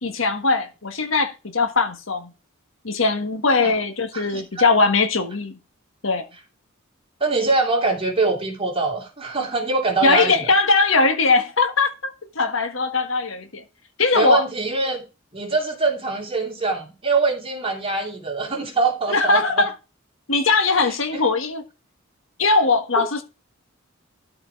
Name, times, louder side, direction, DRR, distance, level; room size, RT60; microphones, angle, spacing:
voice 1, 0.0-2.3 2.8-5.6 6.0-6.2 10.0-13.6 14.0-14.4 19.1-19.7 20.3-21.6 22.4-23.2, left 3 dB, 75° left, 1.5 m, -20 dB
voice 2, 4.1-4.7 7.2-10.5 14.1-15.0 15.3-19.6 20.9-21.2, right 3 dB, 30° right, 3.0 m, -23 dB
12.5 x 4.8 x 4.6 m
head